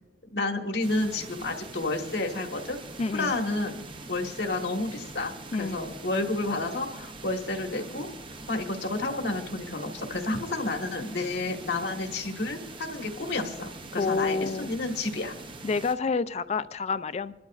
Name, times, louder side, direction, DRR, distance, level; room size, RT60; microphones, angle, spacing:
voice 1, 0.2-2.8 3.1-3.8 4.1-8.1 8.5-15.3, left 2 dB, 75° left, 3 dB, 1.5 m, -30 dB
sound 1, 0.8-15.9, right 3 dB, 30° right, 0.6 m, -43 dB
voice 2, 3.0-3.3 5.5-5.8 14.0-14.7 15.6-17.3, left 4 dB, 35° left, 14 dB, 0.4 m, -28 dB
25.0 x 12.0 x 2.4 m, 1.1 s
head